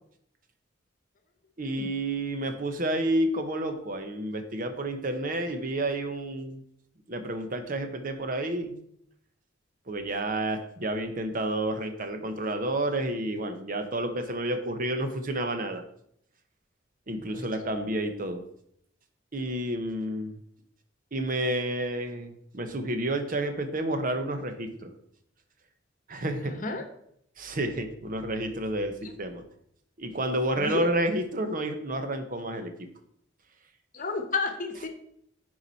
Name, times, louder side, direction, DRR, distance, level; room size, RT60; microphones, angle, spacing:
voice 1, 1.6-6.6 7.1-8.7 9.9-15.8 17.1-18.4 19.3-20.4 21.1-24.9 26.1-26.5 27.4-29.4 30.0-32.7, right 1 dB, 45° right, 7 dB, 1.0 m, -30 dB
voice 2, 26.4-26.9 30.6-30.9 33.9-34.9, left 3 dB, 45° left, 7 dB, 1.0 m, -31 dB
9.8 x 4.8 x 4.2 m, 0.69 s
head